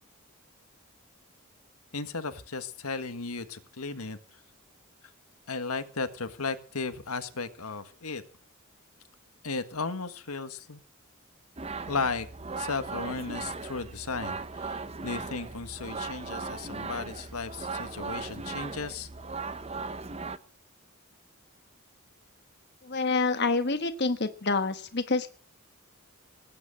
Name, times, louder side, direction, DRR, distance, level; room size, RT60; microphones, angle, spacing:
voice 1, 1.9-4.2 5.5-8.2 9.4-10.8 11.9-12.3 12.6-19.1, left 4 dB, 90° left, 9 dB, 1.7 m, -35 dB
sound 1, 11.6-20.4, right 4 dB, 30° right, 0.9 m, -38 dB
voice 2, 22.8-25.3, left 3 dB, 50° left, 8 dB, 1.4 m, -27 dB
19.5 x 9.4 x 7.8 m, 0.40 s
head